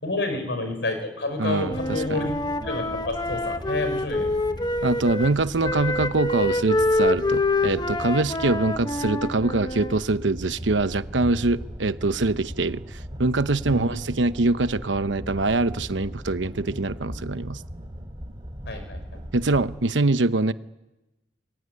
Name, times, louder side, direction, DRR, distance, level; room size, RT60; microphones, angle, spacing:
voice 1, 0.0-4.3 13.6-13.8 18.7-19.0, left 2 dB, 70° left, 6.2 m, -29 dB
voice 2, 1.4-2.3 4.8-12.8 13.2-17.6 19.3-20.5, right 2 dB, 85° right, 1.0 m, -24 dB
Wind instrument woodwind instrument, 1.6-5.3 5.6-10.0, left 2 dB, 25° left, 1.3 m, -26 dB
sound 1, 1.6-19.8, equal, 30° right, 5.3 m, -39 dB
27.0 x 22.0 x 9.7 m
head